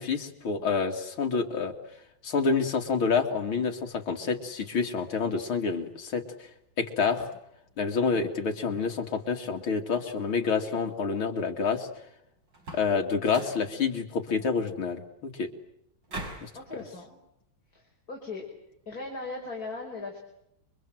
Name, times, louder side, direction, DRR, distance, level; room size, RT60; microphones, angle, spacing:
voice 1, 0.0-1.7 2.2-6.2 6.8-7.3 7.8-11.9 12.7-15.5 16.4-16.5, left 5 dB, 75° left, 3 dB, 3.2 m, -28 dB
sound 1, 12.5-13.0 13.3-13.7 16.1-16.6, right 2 dB, 55° right, 6.0 m, -39 dB
voice 2, 16.5-17.2 17.7-18.5 18.9-20.2, left 3 dB, 45° left, 0 dB, 5.7 m, -38 dB
29.5 x 25.0 x 7.8 m, 0.78 s
omnidirectional pair, 2.3 m